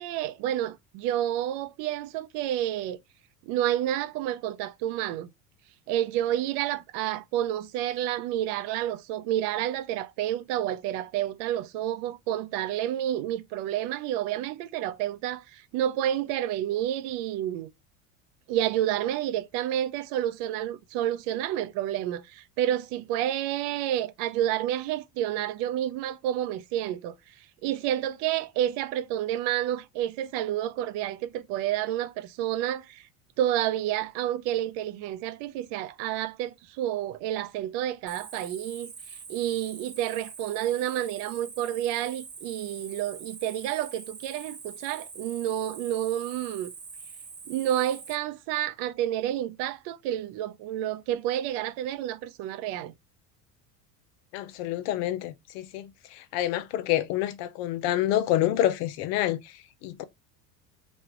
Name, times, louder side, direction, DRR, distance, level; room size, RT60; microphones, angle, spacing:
voice 1, 0.0-3.0 3.5-5.3 5.9-17.7 18.5-33.1 33.4-46.7 47.5-52.9, right 12 dB, 60° right, 0.6 m, -29 dB
Cricket, 38.1-48.1, right 5 dB, 15° right, 0.6 m, -44 dB
voice 2, 54.3-60.0, left 13 dB, 75° left, 0.6 m, -28 dB
3.0 x 2.3 x 3.0 m
hypercardioid pair, 85°, 48 cm